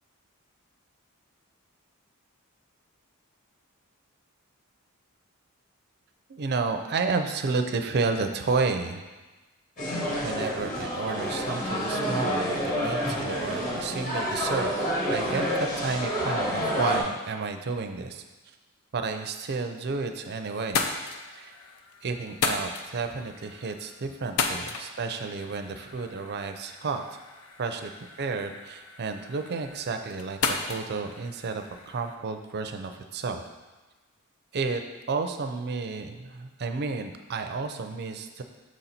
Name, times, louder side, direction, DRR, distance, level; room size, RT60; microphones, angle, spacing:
voice 1, 6.3-9.0 10.2-14.7 15.1-18.2 18.9-20.9 21.3-21.5 22.0-27.2 27.6-33.4 34.5-34.8 35.1-38.4, right 4 dB, 50° right, 7 dB, 0.5 m, -31 dB
sound 1, 9.8-17.0, equal, 35° left, 1.5 m, -28 dB
sound 2, 19.7-20.2 20.5-32.2, left 4 dB, 75° left, 0.5 m, -35 dB
6.3 x 4.0 x 4.2 m, 1.2 s
head